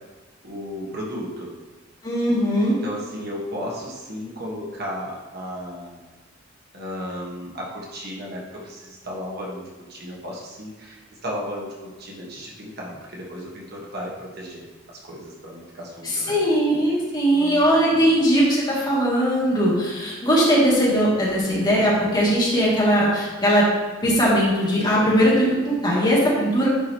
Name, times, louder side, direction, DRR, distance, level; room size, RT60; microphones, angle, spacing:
voice 1, 0.4-1.5 2.7-5.9 6.7-16.4 17.3-18.1, equal, 55° right, -3 dB, 1.6 m, -34 dB
voice 2, 2.0-2.8 16.0-23.6 24.0-26.7, equal, 20° left, -7 dB, 2.5 m, -19 dB
10.5 x 4.9 x 3.0 m, 1.3 s
head